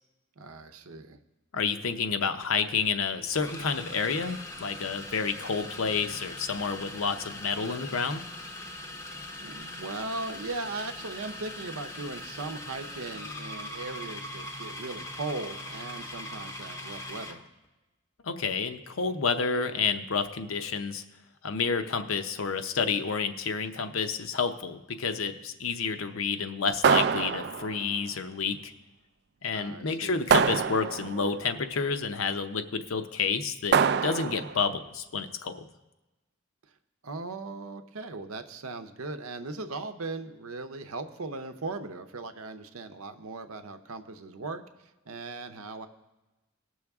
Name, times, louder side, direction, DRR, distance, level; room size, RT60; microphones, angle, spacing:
voice 1, 0.4-1.2 9.4-17.4 29.5-30.2 37.0-44.6 45.1-45.9, right 3 dB, 90° right, 8 dB, 0.8 m, -38 dB
voice 2, 1.5-8.2 18.2-21.0 21.4-28.6 29.4-33.8 34.0-35.6, left 5 dB, 75° left, 8 dB, 0.7 m, -29 dB
sound 1, 3.3-17.4, left 1 dB, 15° left, 0.6 m, -41 dB
sound 2, 26.8-27.9 30.3-31.3 33.7-34.6, right 6 dB, 50° right, 0.3 m, -25 dB
19.0 x 6.3 x 3.5 m, 1.1 s
head